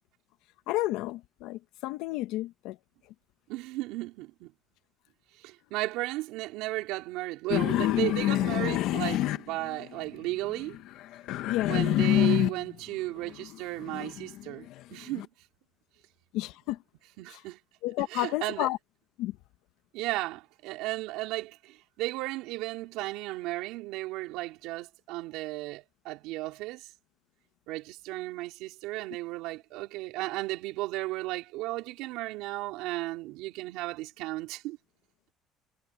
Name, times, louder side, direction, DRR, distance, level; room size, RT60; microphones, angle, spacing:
voice 1, 0.7-2.7 11.4-11.8 16.3-16.8 17.8-18.8 19.2-19.3, left 17 dB, 85° left, 1.4 m, -31 dB
voice 2, 3.5-4.5 5.4-10.8 11.7-15.3 17.2-17.6 18.0-18.7 19.9-26.9 27.7-34.8, right 19 dB, 85° right, 4.1 m, -35 dB
sound 1, 7.5-10.1 10.5-12.7 13.2-15.2, left 14 dB, 70° left, 1.2 m, -27 dB
cardioid pair, 155°, 0 cm